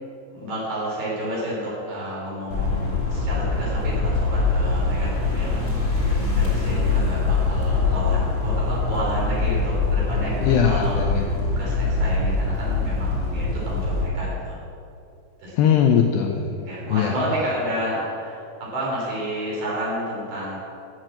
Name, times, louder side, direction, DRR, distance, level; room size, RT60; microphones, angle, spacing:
voice 1, 0.3-5.6 6.3-14.6 15.4-15.6 16.6-20.6, equal, 50° right, -5 dB, 5.2 m, -30 dB
sound 1, 2.5-14.0, left 3 dB, 20° left, 3.2 m, -23 dB
voice 2, 10.4-11.6 15.6-16.6 16.9-17.1, left 8 dB, 85° left, 4 dB, 2.4 m, -21 dB
14.0 x 7.6 x 7.6 m, 2.6 s
omnidirectional pair, 5.6 m